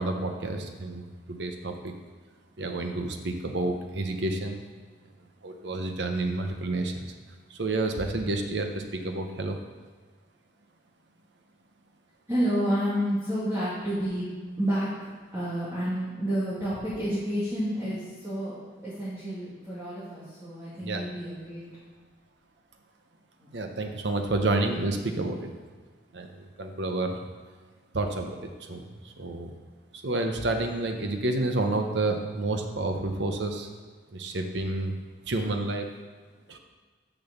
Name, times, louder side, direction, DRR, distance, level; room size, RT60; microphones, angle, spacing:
voice 1, 0.0-2.0 2.6-4.6 5.4-7.0 7.5-9.6 20.8-21.0 23.5-25.6 26.1-27.2 27.9-29.6 29.9-33.7 34.1-34.9 35.3-35.9 36.5-36.6, right 2 dB, 75° right, 4 dB, 0.8 m, -30 dB
voice 2, 12.3-14.3 14.6-18.6 18.8-21.6 23.4-23.5, equal, 15° right, -12 dB, 2.2 m, -30 dB
6.8 x 6.2 x 7.0 m, 1.4 s
head